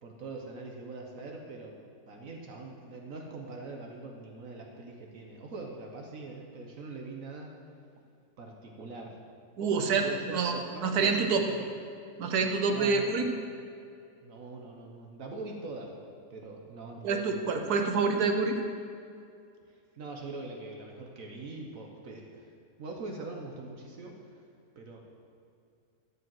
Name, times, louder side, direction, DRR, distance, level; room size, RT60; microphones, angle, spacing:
voice 1, 0.0-1.8 2.1-7.5 8.4-9.2 9.6-11.7 12.7-13.3 14.2-15.9 16.3-17.4 19.7-22.5 22.8-24.2 24.8-25.0, right 3 dB, 60° right, 1 dB, 1.3 m, -42 dB
voice 2, 9.6-11.4 12.2-13.3 17.0-18.6, right 4 dB, 80° right, 5 dB, 1.5 m, -27 dB
13.0 x 5.1 x 7.6 m, 2.4 s
omnidirectional pair, 1.6 m